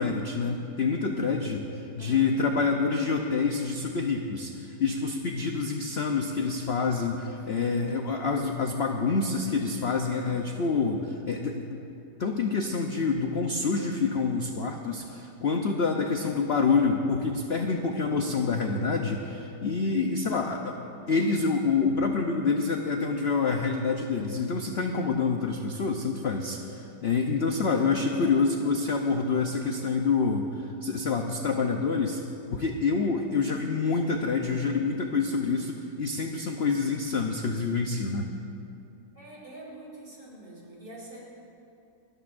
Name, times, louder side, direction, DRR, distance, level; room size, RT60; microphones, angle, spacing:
voice 1, 0.0-1.6 1.9-11.8 12.2-32.2 32.5-38.3, left 4 dB, 55° left, 3 dB, 0.7 m, -27 dB
voice 2, 7.3-7.7 28.1-28.3 33.3-33.6 39.1-41.2, right 1 dB, 50° right, -5 dB, 4.2 m, -45 dB
27.5 x 13.5 x 2.6 m, 2.8 s
omnidirectional pair, 1.9 m